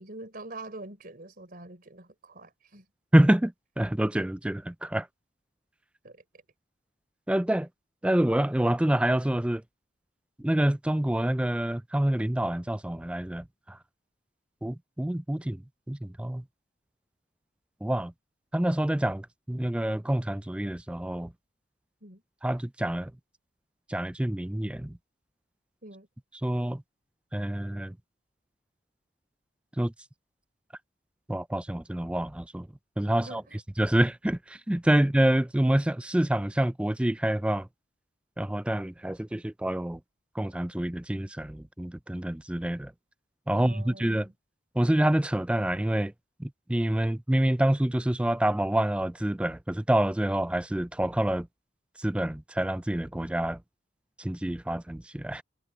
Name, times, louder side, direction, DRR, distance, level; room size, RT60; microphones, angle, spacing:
voice 1, 0.0-2.9 6.0-6.2 22.0-22.2 25.8-26.1 33.1-33.6 43.5-44.3, right 2 dB, 50° right, 4.0 m, -45 dB
voice 2, 3.1-5.1 7.3-7.7 8.0-9.6 10.4-13.8 14.6-15.6 15.9-16.4 17.8-18.1 18.5-21.3 22.4-23.1 23.9-25.0 26.4-26.8 27.3-28.0 29.8-29.9 31.3-32.7 33.0-33.4 33.8-37.7 38.4-40.0 40.4-42.9 43.5-44.3 44.8-46.1 46.4-51.5 52.0-53.6 54.2-55.4, right 1 dB, 5° right, 0.3 m, -27 dB
head